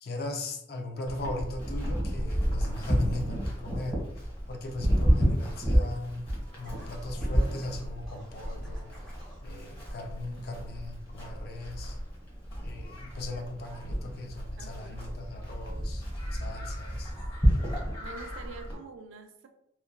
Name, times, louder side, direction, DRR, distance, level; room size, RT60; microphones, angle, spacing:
voice 1, 0.0-4.0 4.5-6.3 6.6-8.9 9.4-12.0 12.6-16.0 16.3-17.1, left 2 dB, 50° left, 3 dB, 0.4 m, -38 dB
Livestock farm animals working animals, 1.1-18.7, equal, 30° left, 1.0 m, -31 dB
Scratching (performance technique), 6.6-9.4, right 1 dB, 5° left, 0.7 m, -54 dB
voice 2, 14.6-15.0 18.0-19.5, right 3 dB, 90° right, 6 dB, 0.4 m, -46 dB
3.0 x 2.2 x 2.2 m, 0.78 s
head